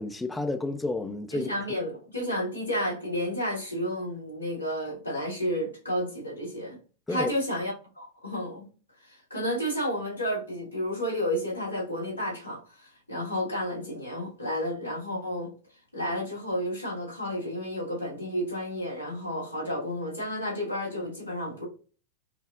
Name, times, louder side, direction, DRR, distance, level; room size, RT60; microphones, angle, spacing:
voice 1, 0.0-1.8 7.1-7.3, left 2 dB, 10° left, 0.4 m, -31 dB
voice 2, 1.3-6.8 7.1-8.7 9.0-15.5 15.9-21.6, equal, 85° left, 1.7 m, -31 dB
5.6 x 2.0 x 2.5 m
figure-of-eight pair, 90°, 0 cm